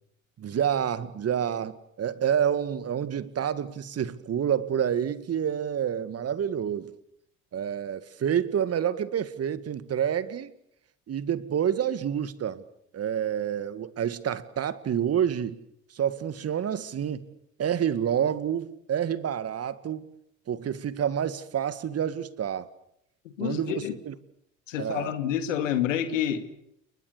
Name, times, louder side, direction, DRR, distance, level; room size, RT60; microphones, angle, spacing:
voice 1, 0.4-6.9 7.5-10.5 11.1-12.6 12.9-15.6 15.9-17.3 17.6-20.1 20.5-22.7 23.4-24.1 24.8-25.1, right 9 dB, 40° right, 2.1 m, -28 dB
voice 2, 23.2-23.9 24.7-26.4, left 10 dB, 75° left, 2.5 m, -28 dB
30.0 x 22.0 x 6.9 m
hypercardioid pair, 65°, 38 cm